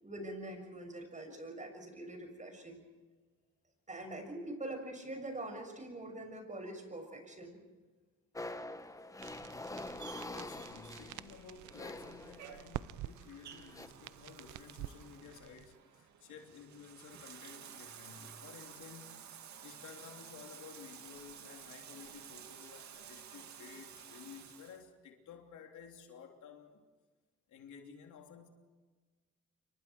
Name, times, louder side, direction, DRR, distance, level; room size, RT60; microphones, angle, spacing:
voice 1, 0.0-2.8 3.9-7.6, right 1 dB, 25° right, 6.6 m, -44 dB
sound 1, 8.4-12.8 13.5-13.9, left 2 dB, 10° left, 1.2 m, -45 dB
sound 2, 9.2-15.8, right 14 dB, 85° right, 0.7 m, -49 dB
Bathtub (filling or washing), 10.0-24.8, right 8 dB, 70° right, 2.4 m, -53 dB
voice 2, 10.2-19.1 19.6-26.9 27.5-28.5, left 7 dB, 75° left, 3.4 m, -54 dB
28.0 x 24.0 x 4.7 m
cardioid pair, 90°, 30 cm